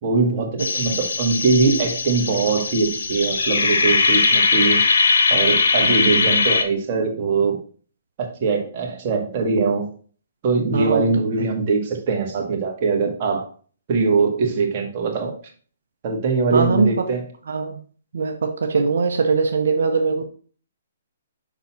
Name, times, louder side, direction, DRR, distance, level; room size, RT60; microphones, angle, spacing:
voice 1, 0.0-4.9 5.3-7.6 8.2-9.9 10.4-13.5 13.9-15.4 16.0-17.2, right 4 dB, 35° right, 1 dB, 1.6 m, -22 dB
sound 1, 0.6-6.6, left 4 dB, 90° left, 1.2 m, -20 dB
voice 2, 0.6-1.0 10.7-11.0 16.5-17.0 17.5-17.8 18.1-20.2, right 4 dB, 80° right, 5 dB, 0.8 m, -21 dB
5.9 x 4.1 x 4.1 m, 0.41 s
hypercardioid pair, 155°, 0 cm